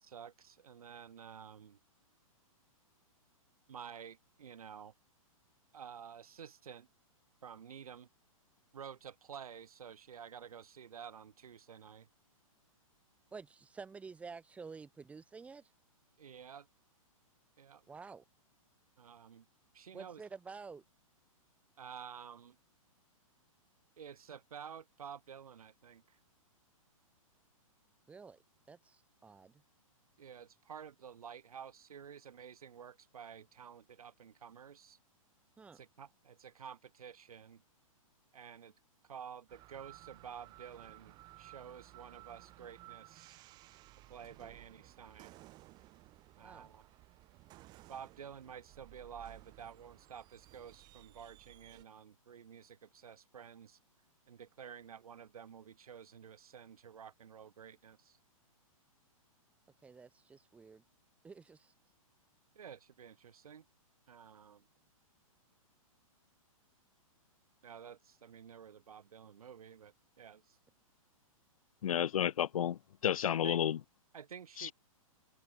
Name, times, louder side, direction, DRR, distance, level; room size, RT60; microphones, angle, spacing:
voice 1, 0.0-1.8 3.7-4.9 5.7-6.9 7.4-8.1 8.7-12.1 16.2-16.7 17.6-17.9 19.0-19.5 19.7-20.2 21.8-22.6 24.0-26.2 30.2-35.0 35.7-37.6 38.3-38.7 39.0-43.4 44.1-45.4 46.4-46.9 47.9-53.8 54.3-58.2 62.6-63.7 64.1-64.6 67.6-70.6 73.4-73.6 74.1-74.7, right 8 dB, 85° right, 3.6 m, -51 dB
voice 2, 13.3-15.7 17.9-18.2 19.9-20.8 28.1-28.4 28.7-29.6 35.6-35.8 46.4-46.7 59.8-60.8 61.2-61.7, right 5 dB, 5° right, 3.9 m, -50 dB
sound 1, 39.5-51.8, right 19 dB, 25° right, 7.9 m, -57 dB
voice 3, 71.8-73.8 74.6-74.7, left 10 dB, 70° left, 0.8 m, -31 dB
hypercardioid pair, 165°, 18 cm